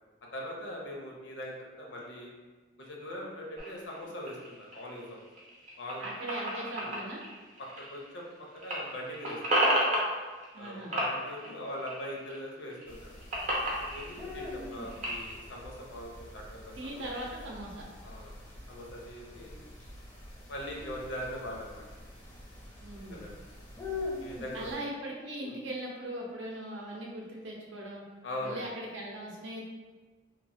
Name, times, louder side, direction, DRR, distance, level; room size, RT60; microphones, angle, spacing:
voice 1, 0.3-2.3 2.8-5.3 5.8-6.1 6.8-6.9 7.6-8.3 8.5-10.0 10.5-13.1 13.8-17.0 18.0-18.4 18.7-19.6 20.5-21.8 23.1-23.3 24.2-24.7 25.4-25.6 28.2-28.6, left 1 dB, 75° left, -1 dB, 0.6 m, -41 dB
sound 1, 3.6-8.3 8.6-10.7 10.9-12.4 12.7-15.3, right 1 dB, 40° right, 0.6 m, -32 dB
voice 2, 6.0-7.2 10.5-11.0 16.7-17.9 22.8-23.2 24.5-28.0 28.4-29.7, right 1 dB, 80° right, -2 dB, 0.6 m, -39 dB
sound 2, 12.9-24.8, left 3 dB, 10° left, 0.4 m, -44 dB
3.0 x 2.1 x 2.6 m, 1.3 s
head